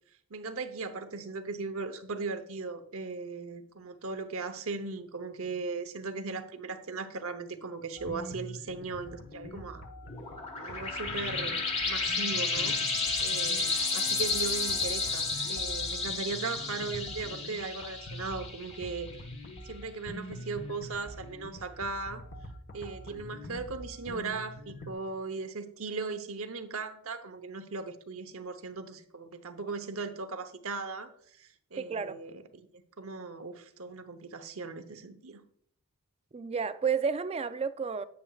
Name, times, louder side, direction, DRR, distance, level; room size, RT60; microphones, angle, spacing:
voice 1, 0.3-9.8 10.6-19.1 19.6-22.2 22.7-35.4, right 4 dB, 75° right, 0.9 m, -38 dB
sound 1, 8.0-24.9, left 1 dB, 55° left, 1.2 m, -45 dB
sound 2, 10.1-19.3, left 4 dB, 30° left, 1.4 m, -32 dB
voice 2, 31.8-32.2 36.3-38.0, right 6 dB, 30° right, 0.3 m, -31 dB
9.5 x 8.9 x 2.4 m
head